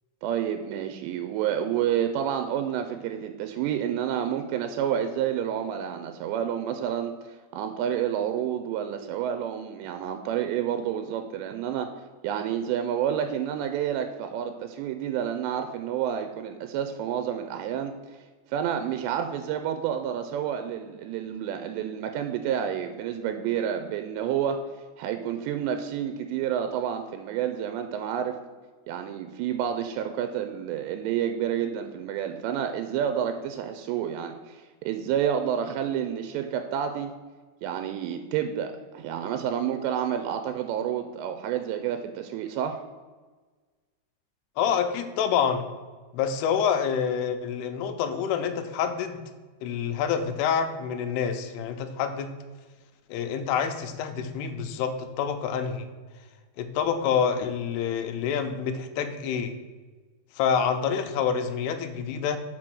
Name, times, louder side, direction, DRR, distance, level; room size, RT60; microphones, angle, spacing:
voice 1, 0.2-11.9 12.2-17.9 18.5-24.6 25.0-28.4 28.9-37.1 37.6-42.8, right 9 dB, 85° right, 7 dB, 2.7 m, -29 dB
voice 2, 44.6-45.6 46.1-49.2 49.6-52.3 53.1-55.9 56.6-59.5 60.4-62.4, left 7 dB, 80° left, 7 dB, 2.6 m, -27 dB
6.0 x 4.9 x 6.1 m, 1.4 s
omnidirectional pair, 5.0 m